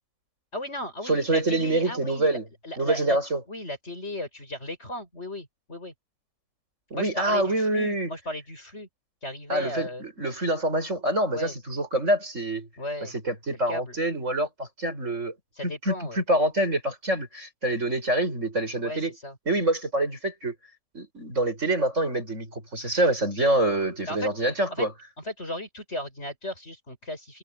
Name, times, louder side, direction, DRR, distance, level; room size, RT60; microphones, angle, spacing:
voice 1, 0.5-2.4 2.6-3.2 3.5-5.9 6.9-8.9 9.2-10.0 11.3-11.5 12.8-13.1 13.7-13.9 15.5-16.2 18.8-19.3 24.1-24.3 24.7-24.9 25.2-27.4, left 1 dB, 55° left, 8.1 m, -35 dB
voice 2, 1.0-2.5 2.8-3.4 6.9-8.1 9.5-12.7 13.0-15.3 15.6-19.1 19.5-20.5 20.9-24.9, right 1 dB, 65° right, 8.2 m, -26 dB
omnidirectional pair, 1.4 m